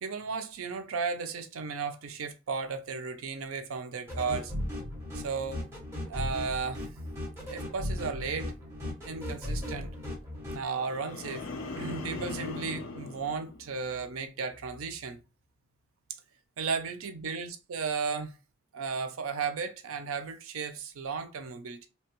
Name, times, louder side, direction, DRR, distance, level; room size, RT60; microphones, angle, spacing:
voice 1, 0.0-4.5 5.1-5.6 6.1-6.9 7.5-8.5 9.1-9.9 10.5-11.4 11.7-15.2 16.6-18.3 18.7-21.9, right 5 dB, 80° right, 0.5 m, -34 dB
sound 1, 4.1-10.6, left 1 dB, 10° right, 1.3 m, -37 dB
sound 2, 10.7-14.2 14.5-14.9, left 3 dB, 70° left, 0.6 m, -40 dB
2.9 x 2.3 x 2.9 m
head